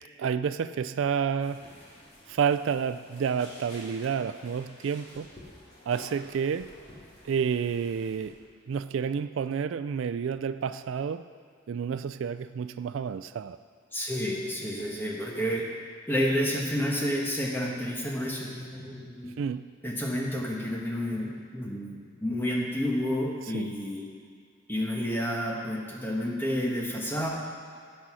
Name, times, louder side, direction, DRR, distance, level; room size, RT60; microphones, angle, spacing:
voice 1, 0.2-1.6 2.3-5.3 5.9-6.7 7.2-8.3 8.7-11.3 11.7-13.6 19.4-19.7 23.5-23.7, right 7 dB, 70° right, 12 dB, 0.3 m, -30 dB
sound 1, 1.4-8.3, left 1 dB, 30° left, 2.9 m, -50 dB
voice 2, 13.9-15.7 16.1-19.3 19.8-24.0 24.7-27.3, equal, 10° left, -1 dB, 1.3 m, -30 dB
16.5 x 5.6 x 6.2 m, 2.1 s
head